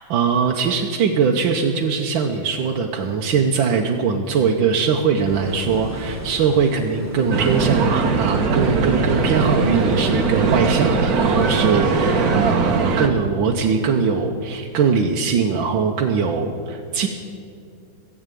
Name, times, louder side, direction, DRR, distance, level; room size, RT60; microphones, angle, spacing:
voice 1, 0.0-17.1, right 6 dB, 75° right, 2 dB, 1.5 m, -21 dB
sound 1, 5.1-12.6, right 1 dB, 15° right, 0.6 m, -36 dB
sound 2, 7.3-13.1, right 4 dB, 50° right, 1.4 m, -20 dB
16.5 x 8.0 x 9.0 m, 2.5 s
omnidirectional pair, 2.2 m